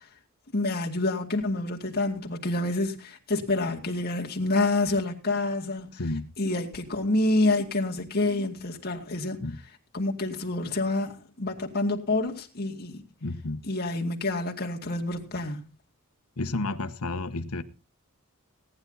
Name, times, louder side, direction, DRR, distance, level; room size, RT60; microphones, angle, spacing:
voice 1, 0.5-5.9 6.4-9.4 9.9-13.0 13.6-15.6, left 2 dB, 45° left, 2.3 m, -28 dB
voice 2, 6.0-6.3 9.4-9.6 13.2-13.6 16.4-17.6, left 2 dB, 90° left, 1.1 m, -31 dB
17.5 x 10.5 x 4.0 m
head